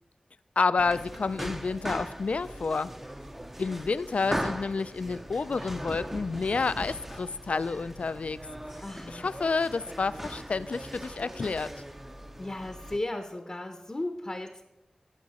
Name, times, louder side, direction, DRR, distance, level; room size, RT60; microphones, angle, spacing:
voice 1, 0.6-2.9 3.6-8.4 9.1-11.7, left 4 dB, 65° left, 16 dB, 0.3 m, -29 dB
sound 1, 0.8-13.0, right 1 dB, 10° right, 0.5 m, -39 dB
voice 2, 8.8-9.3 12.4-14.6, left 1 dB, 30° left, 6 dB, 0.7 m, -35 dB
14.0 x 5.8 x 4.1 m, 0.98 s
wide cardioid pair, 90°, 2 cm